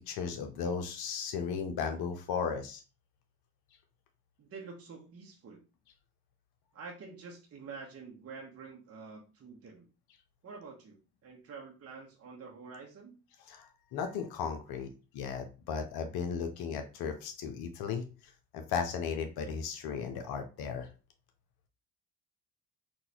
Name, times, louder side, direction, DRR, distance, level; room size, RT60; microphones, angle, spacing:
voice 1, 0.1-2.8 13.5-14.9 15.1-18.0 18.5-20.9, left 6 dB, 50° left, 6 dB, 0.7 m, -35 dB
voice 2, 4.4-5.6 6.7-9.9 10.4-11.0 11.2-13.2, right 4 dB, 30° right, 0 dB, 0.8 m, -47 dB
3.9 x 2.3 x 2.9 m, 0.32 s
hypercardioid pair, 50°, 49 cm